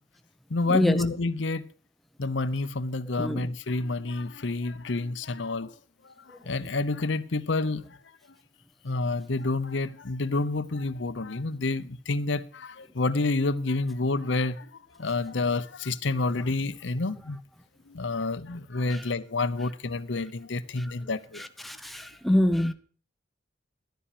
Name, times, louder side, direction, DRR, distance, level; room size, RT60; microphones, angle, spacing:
voice 1, 0.5-1.7 2.2-5.7 6.0-8.0 8.8-14.7 15.0-17.4 17.9-21.4, left 3 dB, 70° left, 0.8 m, -29 dB
voice 2, 21.6-22.7, left 1 dB, ahead, 0.8 m, -24 dB
12.5 x 10.0 x 5.0 m
head